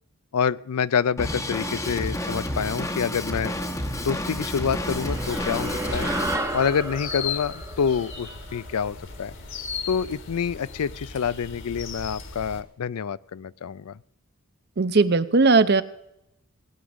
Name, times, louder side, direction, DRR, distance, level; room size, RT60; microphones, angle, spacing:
voice 1, 0.3-3.5 4.0-6.1 6.5-9.3 9.9-14.0, left 7 dB, 85° left, 19 dB, 0.4 m, -27 dB
Drum kit, 1.2-6.3, left 1 dB, 15° left, 1.1 m, -30 dB
sound 1, 4.3-12.6, left 5 dB, 55° left, 1.6 m, -37 dB
sound 2, 4.8-9.5, right 1 dB, 15° right, 1.0 m, -33 dB
voice 2, 14.8-15.8, right 3 dB, 45° right, 14 dB, 0.7 m, -18 dB
19.0 x 9.6 x 6.2 m, 0.81 s
head